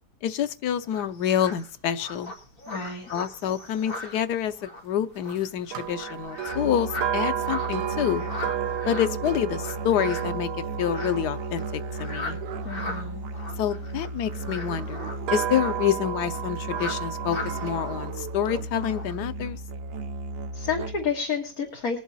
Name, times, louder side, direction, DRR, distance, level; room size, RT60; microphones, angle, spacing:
voice 1, 0.2-2.3 3.1-8.2 8.9-12.4 13.6-19.6, left 10 dB, 85° left, 10 dB, 1.3 m, -27 dB
sound 1, 0.8-19.2, left 2 dB, 35° left, 2.5 m, -40 dB
voice 2, 2.7-3.1 12.6-13.2 20.5-22.0, left 6 dB, 65° left, 0 dB, 2.1 m, -30 dB
sound 2, 5.7-13.9 14.6-18.1, right 10 dB, 90° right, 1.4 m, -33 dB
Musical instrument, 6.4-21.2, right 2 dB, 55° right, 0.7 m, -35 dB
21.5 x 7.1 x 4.0 m, 0.36 s
omnidirectional pair, 1.7 m